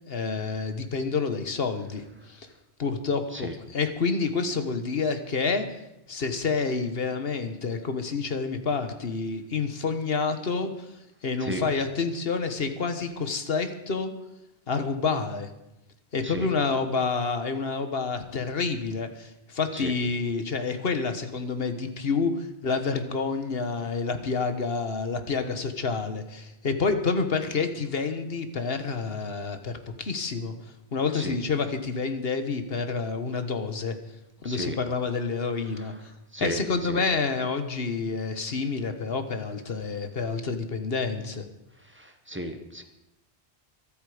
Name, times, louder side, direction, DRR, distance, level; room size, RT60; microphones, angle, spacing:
voice 1, 0.1-2.5 2.8-5.7 6.1-10.9 11.2-14.1 14.7-15.5 16.1-30.5 30.9-34.0 34.4-36.1 36.4-41.4, left 4 dB, 60° left, 8 dB, 1.6 m, -28 dB
voice 2, 34.4-34.8 35.7-35.9 36.3-37.0 41.8-42.8, right 1 dB, 10° right, 5 dB, 1.4 m, -35 dB
24.0 x 8.7 x 5.0 m, 0.90 s
omnidirectional pair, 1.1 m